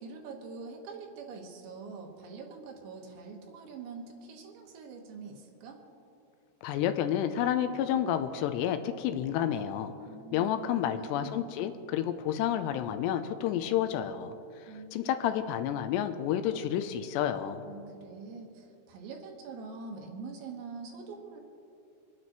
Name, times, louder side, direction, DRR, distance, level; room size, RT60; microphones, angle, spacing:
voice 1, 0.0-5.8 10.1-11.5 14.7-15.0 17.7-21.4, right 4 dB, 90° right, 1 dB, 3.7 m, -44 dB
voice 2, 6.6-9.9 10.3-14.3 14.9-17.6, left 10 dB, 85° left, 9 dB, 2.7 m, -30 dB
28.0 x 9.6 x 3.0 m, 2.6 s
omnidirectional pair, 5.0 m